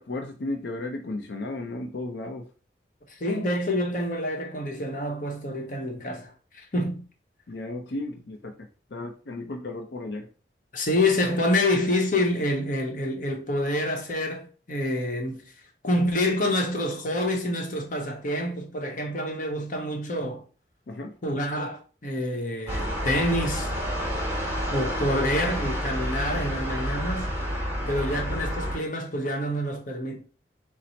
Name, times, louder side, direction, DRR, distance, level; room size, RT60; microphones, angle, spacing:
voice 1, 0.0-2.4 7.5-10.3 20.9-21.2, left 2 dB, 65° left, 0.5 m, -34 dB
voice 2, 3.1-7.0 10.7-15.5 15.8-20.4 21.2-23.7 24.7-27.3 27.9-30.2, left 1 dB, 45° left, 0.9 m, -27 dB
sound 1, 22.7-28.8, equal, 15° right, 1.2 m, -29 dB
4.1 x 2.0 x 4.2 m
head